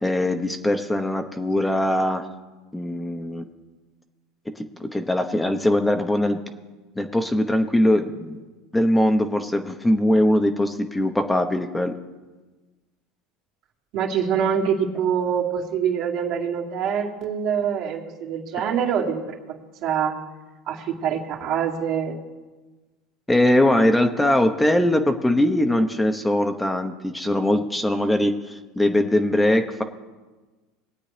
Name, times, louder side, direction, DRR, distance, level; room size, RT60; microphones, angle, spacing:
voice 1, 0.0-2.2 2.7-3.4 4.6-6.4 7.0-8.4 8.7-11.9 23.3-29.8, left 1 dB, 5° left, 6 dB, 0.9 m, -21 dB
voice 2, 13.9-20.1 20.7-22.2, right 7 dB, 60° right, -1 dB, 2.4 m, -25 dB
21.5 x 8.6 x 3.4 m, 1.3 s
supercardioid pair, 105°, 0 cm